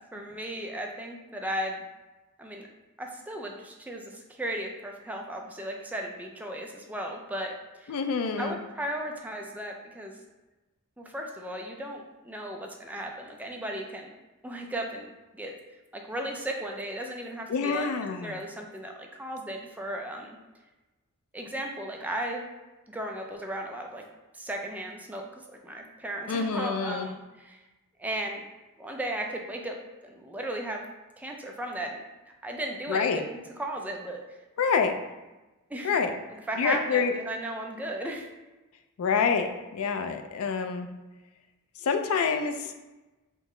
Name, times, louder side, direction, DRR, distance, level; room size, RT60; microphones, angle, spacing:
voice 1, 0.1-1.8 2.4-2.7 3.0-7.5 7.8-8.0 8.4-10.2 11.0-14.1 14.4-15.5 15.9-17.9 18.2-20.4 21.3-22.4 22.9-24.0 24.3-27.6 28.0-28.4 28.8-29.7 30.0-30.9 31.2-32.0 32.4-34.2 35.7-35.9 36.3-38.3, right 1 dB, 5° right, 1 dB, 0.3 m, -35 dB
voice 2, 7.9-8.6 17.5-18.3 26.3-27.1 32.9-33.2 34.6-34.9 35.8-36.1 36.6-37.1 39.0-40.9 41.8-42.7, left 5 dB, 70° left, 7 dB, 0.4 m, -27 dB
3.7 x 2.0 x 3.6 m, 1.1 s
head